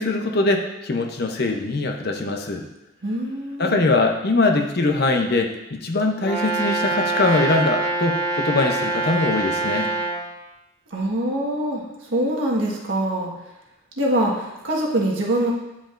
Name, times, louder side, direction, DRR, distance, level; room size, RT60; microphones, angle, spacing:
voice 1, 0.0-2.7 3.6-9.9, left 2 dB, 50° left, 4 dB, 0.7 m, -22 dB
voice 2, 3.0-3.8 10.9-13.3 14.0-15.5, right 1 dB, 70° right, -3 dB, 1.5 m, -24 dB
Brass instrument, 6.2-10.2, right 2 dB, 45° right, 2.4 m, -24 dB
9.8 x 5.1 x 2.5 m, 0.97 s
head